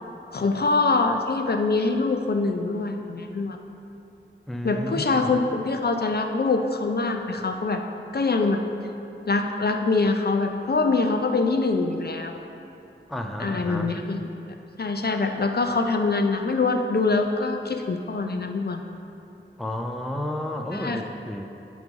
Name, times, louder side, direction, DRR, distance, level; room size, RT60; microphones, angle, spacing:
voice 1, 0.3-3.6 4.6-7.8 8.1-8.6 9.3-12.4 13.4-14.3 14.8-18.8 20.7-21.0, left 3 dB, 50° left, 4 dB, 0.5 m, -24 dB
voice 2, 4.5-5.3 13.1-13.9 19.6-21.4, left 1 dB, ahead, 4 dB, 0.5 m, -31 dB
9.2 x 3.1 x 5.3 m, 2.9 s
wide cardioid pair, 60°, 21 cm